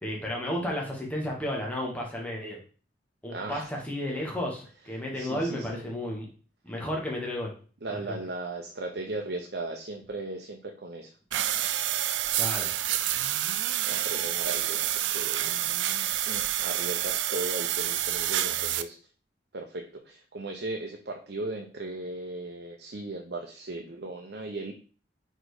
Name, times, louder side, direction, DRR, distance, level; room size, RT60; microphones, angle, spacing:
voice 1, 0.0-2.6 3.2-6.2 6.6-7.5 8.1-8.2 12.3-12.7, left 1 dB, 10° left, -2 dB, 1.6 m, -32 dB
voice 2, 3.3-3.7 5.1-5.9 7.8-11.1 13.6-15.5 16.3-19.0 19.5-24.7, right 2 dB, 65° right, 2 dB, 0.8 m, -37 dB
sound 1, 11.3-18.8, right 12 dB, 90° right, 0.4 m, -28 dB
5.0 x 4.4 x 4.8 m, 0.39 s
head